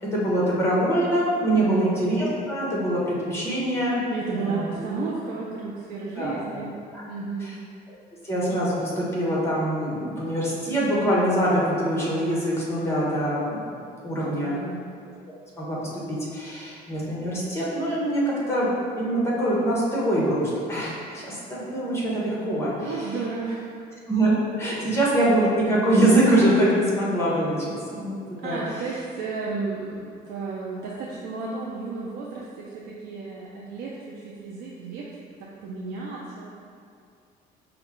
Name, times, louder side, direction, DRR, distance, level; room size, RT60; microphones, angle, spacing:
voice 1, 0.0-4.0 4.3-4.7 6.2-6.6 6.9-7.1 7.4-7.5 8.2-13.6 14.0-14.6 15.6-18.2 18.5-22.9 24.1-24.3 24.6-28.6, right 1 dB, 15° left, -6 dB, 1.2 m, -24 dB
voice 2, 1.5-1.9 4.1-6.7 7.1-7.5 14.4-14.8 22.8-23.9 28.4-35.1 35.4-36.5, right 4 dB, 80° right, -4 dB, 0.5 m, -33 dB
5.1 x 2.3 x 3.6 m, 2.4 s
cardioid pair, 110°, 17 cm